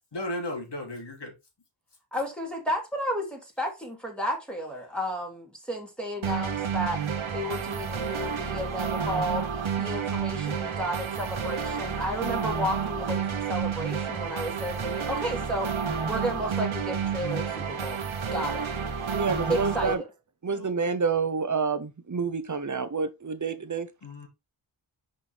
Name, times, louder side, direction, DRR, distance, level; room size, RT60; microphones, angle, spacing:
voice 1, 0.1-1.3 8.3-8.5 20.5-20.7 24.0-24.3, left 1 dB, 55° left, 2.8 m, -35 dB
voice 2, 2.1-7.0 7.3-9.5 9.8-15.7 16.0-18.0 18.3-18.7 19.5-19.9, equal, ahead, 2.9 m, -32 dB
sound 1, 6.2-19.9, right 6 dB, 75° right, 1.3 m, -30 dB
voice 3, 19.1-20.0 20.4-23.9, right 5 dB, 40° right, 1.0 m, -28 dB
6.0 x 5.2 x 3.5 m
cardioid pair, 55°, 48 cm